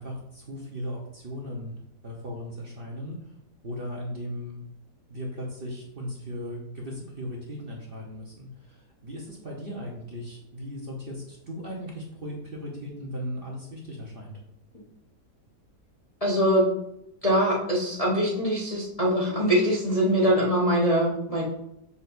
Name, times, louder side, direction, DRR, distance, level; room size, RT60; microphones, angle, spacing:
voice 1, 0.0-1.7 2.0-3.2 3.6-4.6 5.1-14.4, equal, 40° right, -3 dB, 1.0 m, -37 dB
voice 2, 16.2-16.7 17.2-21.4, equal, 25° left, -5 dB, 0.9 m, -23 dB
6.3 x 5.7 x 2.6 m, 0.79 s
omnidirectional pair, 1.7 m